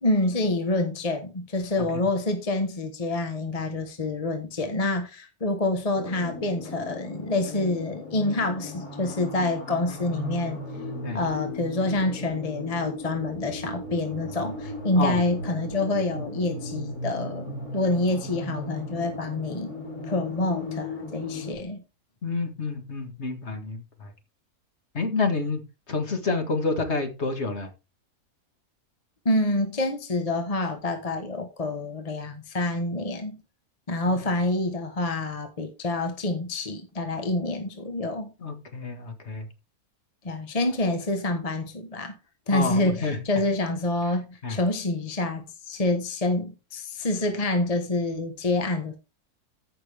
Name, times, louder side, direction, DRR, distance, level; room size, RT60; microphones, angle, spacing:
voice 1, 0.0-10.6 11.1-19.7 20.0-21.8 29.2-33.4 33.9-38.3 40.2-42.1 42.5-49.0, left 2 dB, 25° left, 1.1 m, -27 dB
sound 1, 5.9-21.5, left 2 dB, 75° left, 5.5 m, -36 dB
voice 2, 22.2-24.1 24.9-25.6 25.9-27.7 34.1-34.2 38.4-39.5 42.5-43.2 44.4-44.6, left 3 dB, 45° left, 2.0 m, -28 dB
14.0 x 6.0 x 3.4 m
omnidirectional pair, 1.6 m